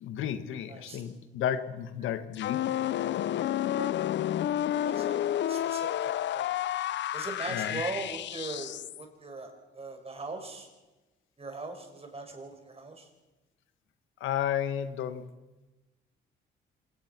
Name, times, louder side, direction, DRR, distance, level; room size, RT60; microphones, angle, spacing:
voice 1, 0.0-2.7 7.5-7.8 14.2-15.3, left 10 dB, 85° left, 10 dB, 1.6 m, -32 dB
sound 1, 2.3-9.0, left 12 dB, 65° left, 0.6 m, -30 dB
voice 2, 4.8-5.9 6.3-6.5 7.1-10.7 11.4-13.1, right 3 dB, 30° right, 4 dB, 6.3 m, -40 dB
26.5 x 18.5 x 6.1 m, 1.1 s
cardioid pair, 90°, 20 cm